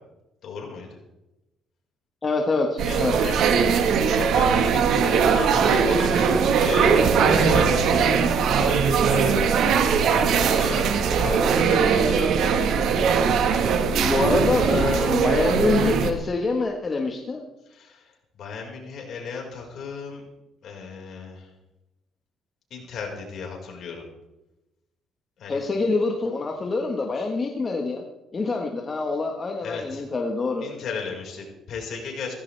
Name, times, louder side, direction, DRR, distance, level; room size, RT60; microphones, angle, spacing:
voice 1, 0.4-1.0 2.8-3.4 4.1-7.9 8.1-9.7 10.1-12.8 17.7-20.2 20.6-21.5 22.7-24.0 25.4-25.6 27.1-27.3 29.6-30.0 30.6-32.3, left 5 dB, 60° left, 0 dB, 5.0 m, -36 dB
voice 2, 2.2-3.3 13.9-17.4 25.5-28.0 28.3-30.6, left 3 dB, 30° left, 2 dB, 1.4 m, -25 dB
sound 1, 2.8-16.1, right 6 dB, 70° right, 1.5 m, -20 dB
16.5 x 15.5 x 3.4 m, 0.95 s
cardioid pair, 135°, 0 cm